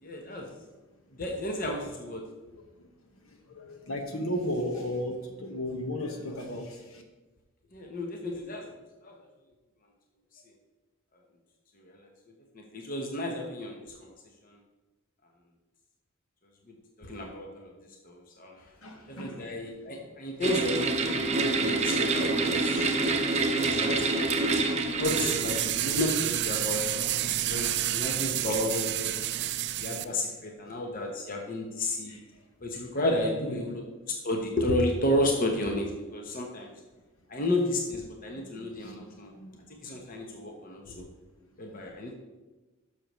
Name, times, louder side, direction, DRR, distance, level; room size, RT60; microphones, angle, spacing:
voice 1, 0.0-0.5 1.2-2.2 7.7-8.6 9.0-9.1 11.8-12.0 12.5-14.1 14.4-14.6 17.0-17.7 18.0-18.6 19.1-22.8 23.5-24.1 24.4-24.6 24.9-29.4 29.8-32.1 32.6-33.8 34.2-36.7 37.3-39.3 39.8-41.1 41.6-42.1, left 1 dB, 40° left, 1 dB, 0.9 m, -32 dB
voice 2, 3.2-7.0 18.8-19.5 19.9-20.0 22.3-23.2 27.5-27.9 30.0-30.2 30.7-30.8 32.0-32.2 33.3-33.7 36.6-36.7 38.3-40.0 42.0-42.1, left 1 dB, 75° left, 3 dB, 1.3 m, -37 dB
sound 1, 20.4-26.0, right 3 dB, 30° right, 0.7 m, -27 dB
sound 2, 25.0-30.0, right 12 dB, 50° right, 0.4 m, -29 dB
12.0 x 6.6 x 3.1 m, 1.2 s
head